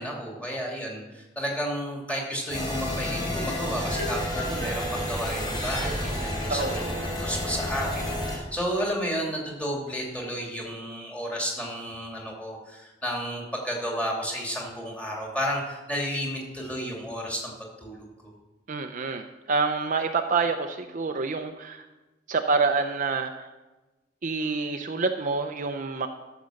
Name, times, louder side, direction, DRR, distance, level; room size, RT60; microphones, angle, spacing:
voice 1, 0.0-17.5 17.8-18.1, equal, 5° left, -2 dB, 2.8 m, -32 dB
sound 1, 2.5-8.4, left 1 dB, 25° left, 3.6 m, -30 dB
voice 2, 6.5-7.0 18.7-21.8 22.3-23.5 24.2-26.1, right 4 dB, 45° right, 6 dB, 0.6 m, -27 dB
13.0 x 7.0 x 6.4 m, 1.1 s
head